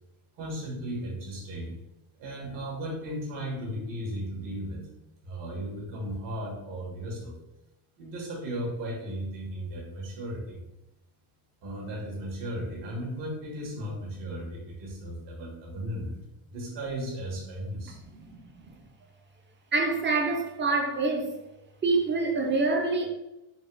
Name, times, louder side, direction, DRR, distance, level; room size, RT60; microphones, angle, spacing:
voice 1, 0.4-1.7 2.2-4.8 5.2-7.4 8.0-10.6 11.6-16.2 16.5-18.0, equal, 60° right, 1.5 m, -35 dB
voice 2, 19.7-21.3 21.8-23.1, right 3 dB, 25° right, 0.4 m, -26 dB
4.0 x 2.3 x 4.4 m
cardioid pair, 155°, 47 cm